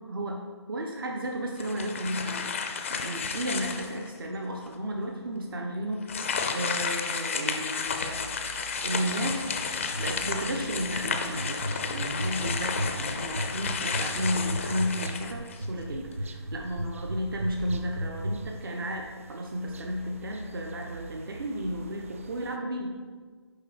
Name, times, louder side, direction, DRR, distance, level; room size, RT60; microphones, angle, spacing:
voice 1, 0.1-0.4 0.7-8.3 8.8-11.6 11.9-22.9, equal, 50° right, 1 dB, 1.0 m, -33 dB
sound 1, 1.5-4.1 4.7-4.8 6.0-15.8, left 5 dB, 25° left, 0.5 m, -32 dB
sound 2, 7.9-22.6, right 4 dB, 30° right, 0.4 m, -47 dB
sound 3, 9.9-18.3, equal, 80° right, 1.0 m, -32 dB
9.9 x 3.5 x 6.3 m, 1.5 s
figure-of-eight pair, 155°, 15 cm